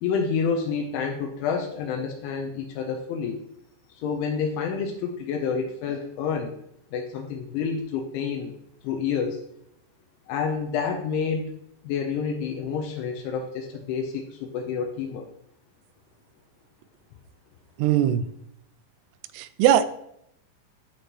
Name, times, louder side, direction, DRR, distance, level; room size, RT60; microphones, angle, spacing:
voice 1, 0.0-3.4 3.9-6.5 6.9-8.5 8.8-9.4 10.3-11.5 11.8-15.3, left 6 dB, 80° left, 3 dB, 3.0 m, -28 dB
voice 2, 17.8-18.3 19.3-19.9, right 11 dB, 85° right, 13 dB, 3.0 m, -20 dB
15.0 x 5.0 x 3.0 m, 0.76 s
omnidirectional pair, 5.8 m